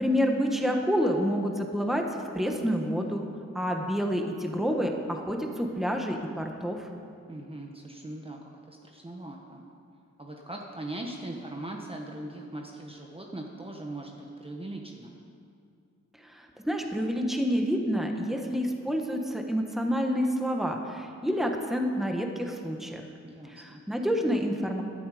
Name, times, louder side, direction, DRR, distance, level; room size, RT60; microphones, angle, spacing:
voice 1, 0.0-2.0 2.3-3.2 3.5-6.9 16.2-23.1 23.5-24.8, equal, ahead, 2 dB, 1.4 m, -28 dB
voice 2, 7.3-8.4 8.7-9.6 10.2-15.1 23.2-23.8, right 1 dB, 20° right, 0 dB, 1.2 m, -40 dB
18.0 x 13.0 x 5.0 m, 2.4 s
wide cardioid pair, 135°, 29 cm